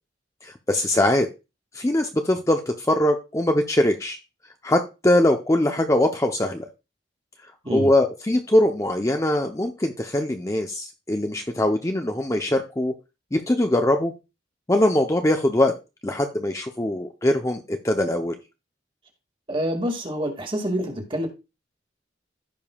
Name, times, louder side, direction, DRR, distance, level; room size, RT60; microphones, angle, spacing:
voice 1, 0.4-1.3 1.7-4.2 4.6-6.7 7.7-12.9 13.3-14.1 14.7-15.7 16.0-18.4, left 1 dB, 15° left, 4 dB, 0.6 m, -22 dB
voice 2, 19.5-21.3, equal, 30° right, 4 dB, 1.9 m, -27 dB
15.5 x 5.4 x 2.3 m, 0.27 s
head